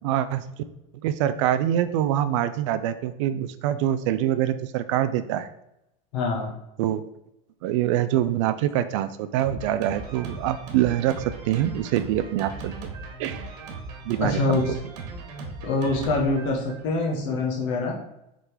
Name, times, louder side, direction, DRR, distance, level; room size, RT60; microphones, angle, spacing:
voice 1, 0.0-0.4 1.0-5.5 6.8-7.0 7.6-12.9 13.2-13.5 14.1-14.6, right 11 dB, 50° right, 12 dB, 0.4 m, -25 dB
voice 2, 6.1-6.5 14.2-14.7 15.6-17.9, left 3 dB, 50° left, -1 dB, 1.2 m, -25 dB
Drum kit, 9.4-17.2, right 3 dB, 85° right, 1.7 m, -38 dB
6.4 x 3.8 x 4.6 m, 0.85 s
supercardioid pair, 175°, 20 cm